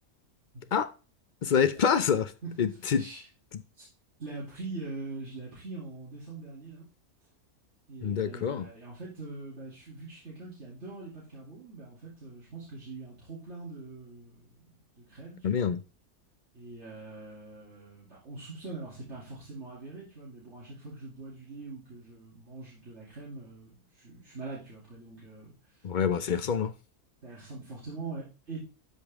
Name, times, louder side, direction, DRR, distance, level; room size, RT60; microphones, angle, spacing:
voice 1, 1.4-2.3 2.6-3.0 8.0-8.7 15.4-15.8 25.8-26.7, left 7 dB, 65° left, 0.4 m, -26 dB
voice 2, 2.4-3.2 3.8-3.9 4.2-6.8 7.9-15.7 16.5-25.9 27.2-28.6, right 3 dB, 50° right, 3.0 m, -43 dB
12.5 x 5.2 x 3.5 m
omnidirectional pair, 1.6 m